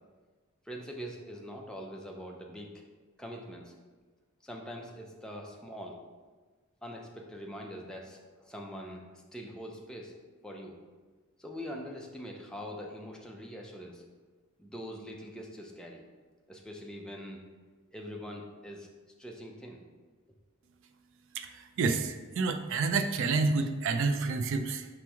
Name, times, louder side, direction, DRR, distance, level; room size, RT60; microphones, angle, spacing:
voice 1, 0.7-2.8 3.2-3.7 4.4-6.0 6.8-10.1 10.4-10.8 11.4-14.0 14.6-16.0 16.5-17.4 17.9-18.9 19.2-19.8, equal, 5° left, 0 dB, 0.5 m, -43 dB
voice 2, 21.3-24.9, right 4 dB, 65° right, 7 dB, 0.4 m, -29 dB
5.0 x 3.0 x 3.5 m, 1.4 s
head